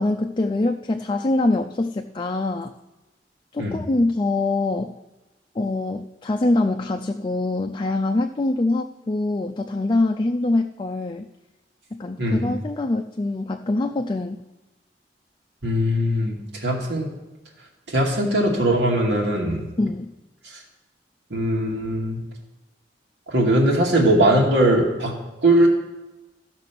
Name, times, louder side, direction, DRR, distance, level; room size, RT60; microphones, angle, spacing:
voice 1, 0.0-2.7 3.5-4.9 5.6-11.2 11.9-14.4 19.8-20.1, left 2 dB, 25° left, 4 dB, 0.4 m, -24 dB
voice 2, 12.2-12.5 15.6-17.1 17.9-19.7 21.3-22.2 23.3-25.1 25.4-25.7, right 1 dB, 90° right, -2 dB, 2.5 m, -20 dB
13.5 x 6.0 x 6.0 m, 1.1 s
head